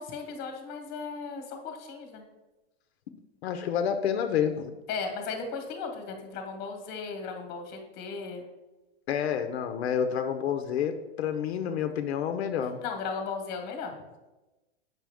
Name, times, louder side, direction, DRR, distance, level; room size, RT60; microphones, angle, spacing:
voice 1, 0.0-2.2 4.9-8.4 12.8-13.9, left 5 dB, 30° left, 4 dB, 1.2 m, -36 dB
voice 2, 3.4-4.7 9.1-12.8, left 8 dB, 80° left, 6 dB, 0.7 m, -29 dB
7.5 x 5.8 x 3.5 m, 1.1 s
supercardioid pair, 150°, 32 cm